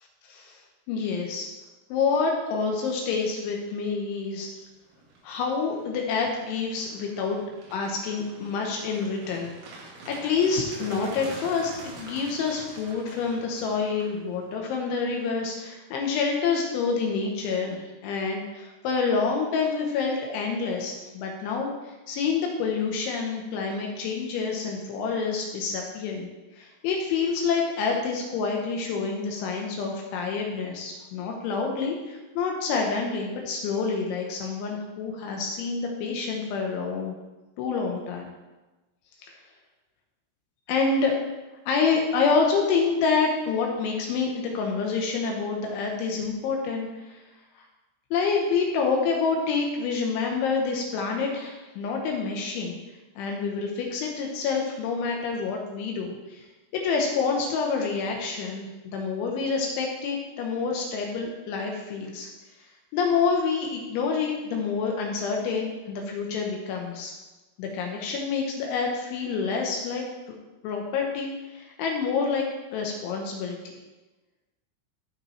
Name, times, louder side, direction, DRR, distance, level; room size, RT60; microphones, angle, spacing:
voice 1, 0.3-0.6 0.9-1.5 1.9-4.5 5.2-7.4 7.7-9.5 10.1-26.3 26.6-37.2 37.6-38.3 39.2-39.3 40.7-41.2 41.7-47.2 48.1-52.8 53.2-56.5 56.7-62.3 62.9-67.1 67.6-70.0 70.6-72.5 72.7-73.6, left 5 dB, 75° left, 1 dB, 3.1 m, -27 dB
sound 1, 3.8-4.2 4.6-14.7, right 2 dB, 85° right, 4.6 m, -46 dB
14.5 x 5.9 x 3.2 m, 1.1 s
omnidirectional pair, 6.0 m